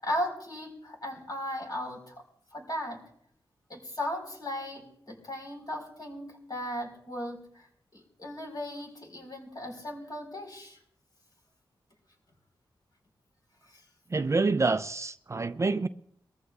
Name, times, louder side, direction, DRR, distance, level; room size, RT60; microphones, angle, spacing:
voice 1, 0.0-2.2 2.5-3.0 3.7-7.7 7.9-10.8, left 1 dB, 45° left, 4.7 m, -36 dB
voice 2, 14.1-15.9, right 3 dB, 35° right, 0.5 m, -27 dB
22.5 x 14.5 x 2.5 m
cardioid pair, 70°, 9 cm